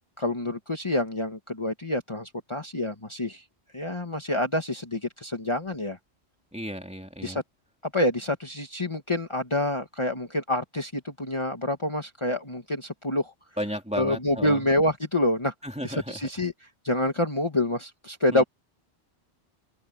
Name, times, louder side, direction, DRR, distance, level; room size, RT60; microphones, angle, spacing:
voice 1, 0.2-3.4 3.7-6.0 7.2-7.4 7.9-13.3 14.0-15.5 15.8-16.5 16.8-18.4, left 1 dB, 25° left, 1.7 m, -27 dB
voice 2, 6.5-7.4 13.6-14.7 15.6-16.3 18.3-18.4, equal, 5° right, 2.7 m, -34 dB
open air
omnidirectional pair, 1.1 m